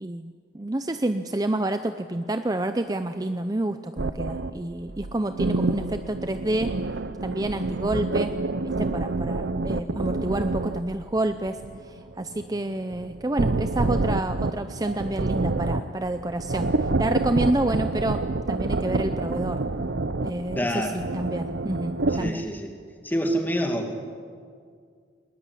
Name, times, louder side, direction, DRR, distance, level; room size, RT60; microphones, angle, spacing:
voice 1, 0.0-6.7 7.2-8.4 8.6-18.2 18.5-19.6 20.2-22.4, right 1 dB, 20° right, 9 dB, 0.6 m, -28 dB
sound 1, 4.0-10.8 11.2-22.3, right 2 dB, 70° right, 0.8 m, -28 dB
voice 2, 20.6-21.0 22.2-22.8 23.0-23.9, equal, 10° left, 3 dB, 2.3 m, -27 dB
21.0 x 20.0 x 9.9 m, 2.2 s
head